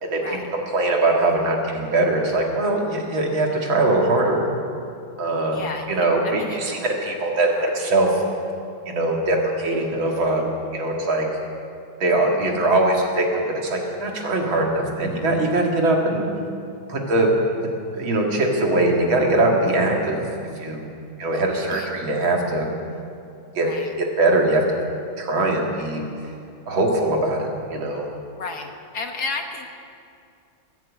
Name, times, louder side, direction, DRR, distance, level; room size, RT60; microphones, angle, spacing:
voice 1, 0.0-4.4 5.2-5.6 5.9-8.2 8.9-10.4 10.7-11.3 12.0-16.3 16.9-17.3 17.9-20.2 20.6-20.8 21.2-22.7 23.6-23.7 24.2-24.8 25.2-26.0 26.7-28.1, right 2 dB, 75° right, 0 dB, 2.8 m, -21 dB
voice 2, 5.5-6.6 7.6-7.7 21.3-21.4 21.7-21.9 23.6-23.9 28.4-29.7, left 4 dB, 55° left, 4 dB, 1.5 m, -33 dB
21.5 x 7.7 x 8.5 m, 2.4 s
omnidirectional pair, 2.2 m